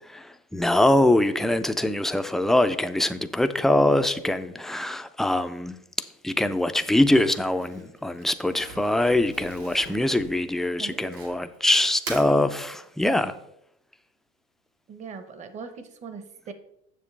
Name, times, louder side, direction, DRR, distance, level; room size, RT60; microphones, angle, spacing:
voice 1, 0.1-5.8 6.2-13.3, left 1 dB, ahead, 0.4 m, -23 dB
Crumpling crinkling, 7.0-11.6 11.9-12.3, right 4 dB, 80° right, 2.1 m, -42 dB
voice 2, 10.8-11.2 14.9-16.5, right 5 dB, 35° right, 1.0 m, -40 dB
7.3 x 6.7 x 3.3 m
supercardioid pair, 110°, 20 cm